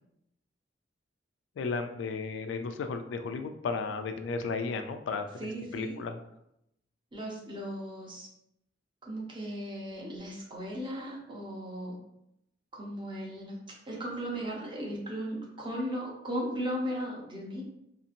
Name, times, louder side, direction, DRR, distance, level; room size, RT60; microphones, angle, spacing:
voice 1, 1.6-6.2, left 4 dB, 80° left, 7 dB, 0.3 m, -34 dB
voice 2, 5.4-5.9 7.1-8.3 9.0-11.9 12.7-13.6 13.9-17.6, equal, 25° right, -3 dB, 0.7 m, -36 dB
2.8 x 2.4 x 2.6 m, 0.80 s
head